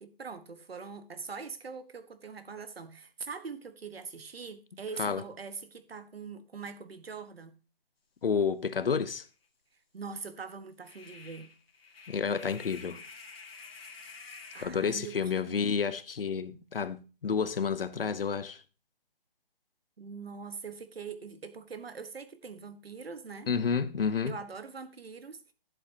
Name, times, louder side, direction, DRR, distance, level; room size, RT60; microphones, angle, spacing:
voice 1, 0.0-7.5 9.9-11.5 14.5-15.8 20.0-23.5 24.3-25.4, right 5 dB, 85° right, 1.4 m, -43 dB
voice 2, 8.2-9.2 12.1-13.0 14.6-18.6 23.5-24.3, left 6 dB, 70° left, 1.0 m, -30 dB
sound 1, 8.8-8.9 9.3-9.4 10.8-14.7, left 5 dB, 85° left, 2.3 m, -49 dB
11.5 x 7.7 x 2.8 m
hypercardioid pair, 175°, 29 cm